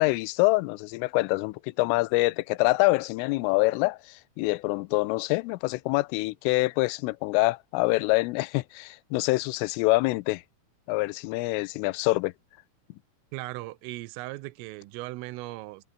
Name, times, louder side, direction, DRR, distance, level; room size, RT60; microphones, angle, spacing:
voice 1, 0.0-10.4 10.9-12.3, left 22 dB, 85° left, 3.2 m, -25 dB
voice 2, 13.3-15.8, right 20 dB, 90° right, 3.5 m, -38 dB
omnidirectional pair, 5.7 m